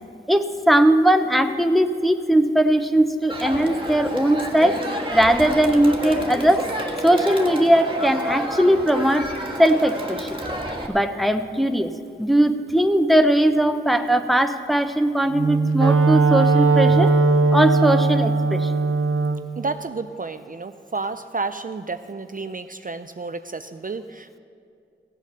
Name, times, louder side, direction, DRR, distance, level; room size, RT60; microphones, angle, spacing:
voice 1, 0.3-4.8 5.1-6.7 7.0-9.3 9.6-10.3 10.9-11.9 12.2-17.1 17.5-18.7, right 1 dB, ahead, 8 dB, 0.7 m, -19 dB
Crowd, 3.3-10.9, equal, 25° right, 1.6 m, -30 dB
Wind instrument woodwind instrument, 15.3-19.4, right 3 dB, 90° right, 0.8 m, -18 dB
voice 2, 19.6-24.4, right 3 dB, 40° right, 10 dB, 0.4 m, -31 dB
16.0 x 8.3 x 6.7 m, 2.5 s
wide cardioid pair, 55°, 21 cm